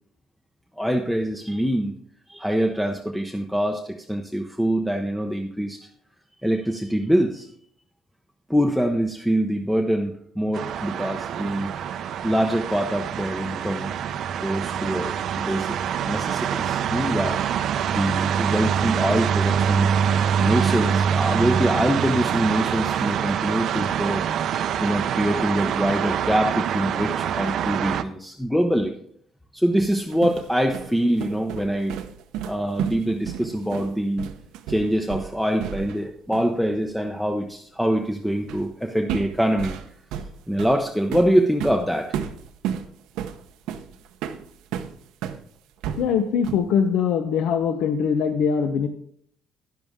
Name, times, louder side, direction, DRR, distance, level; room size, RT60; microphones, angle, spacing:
voice 1, 0.8-1.9 2.3-5.8 6.4-7.5 8.5-11.7 12.2-13.9 14.4-17.4 17.9-19.9 20.4-24.2 24.8-28.9 29.5-32.0 32.5-34.3 34.7-39.8 40.5-42.1, equal, ahead, 3 dB, 0.7 m, -24 dB
sound 1, 10.5-28.0, right 8 dB, 55° right, 0.6 m, -25 dB
sound 2, 29.8-36.1 36.3-36.5 38.5-38.7 39.1-45.4 45.8-46.8, right 9 dB, 85° right, 0.8 m, -33 dB
voice 2, 46.0-48.9, left 7 dB, 65° left, 7 dB, 0.8 m, -22 dB
11.0 x 10.5 x 3.6 m, 0.64 s
cardioid pair, 155°, 0 cm